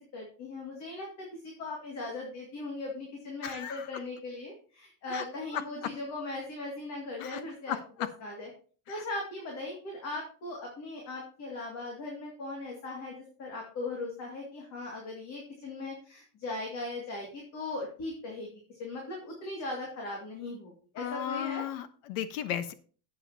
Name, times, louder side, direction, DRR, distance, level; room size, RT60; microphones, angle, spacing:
voice 1, 0.1-7.8 8.2-8.5 8.9-21.7, left 2 dB, 35° left, -1 dB, 2.3 m, -39 dB
voice 2, 3.4-3.9 5.1-5.2 5.5-5.6 7.2-7.4 7.7-8.1 8.9-9.0 21.0-22.7, left 10 dB, 65° left, 12 dB, 1.2 m, -35 dB
12.5 x 8.4 x 2.8 m, 0.41 s
cardioid pair, 180°, 48 cm